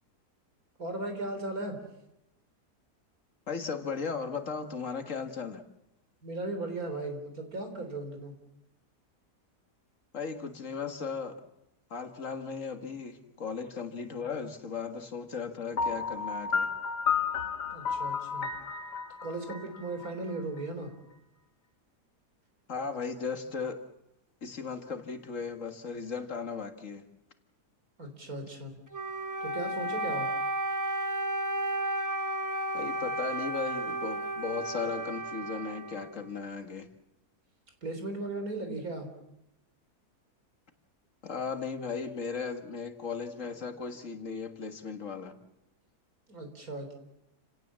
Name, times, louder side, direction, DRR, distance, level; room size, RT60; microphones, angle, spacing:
voice 1, 0.8-1.8 6.2-8.3 17.7-18.5 19.2-20.9 28.0-28.7 29.4-30.3 37.8-39.1 45.3-45.4 46.3-46.9, right 2 dB, 60° right, 6 dB, 4.2 m, -37 dB
voice 2, 3.5-5.6 10.1-11.4 11.9-16.7 22.7-23.8 24.4-27.0 32.7-36.9 41.2-45.4, left 5 dB, 50° left, 7 dB, 2.0 m, -36 dB
Piano, 15.8-20.6, left 6 dB, 90° left, 1.9 m, -32 dB
Wind instrument woodwind instrument, 28.9-36.5, right 1 dB, 15° right, 0.7 m, -33 dB
29.5 x 17.5 x 7.5 m, 0.89 s
omnidirectional pair, 1.7 m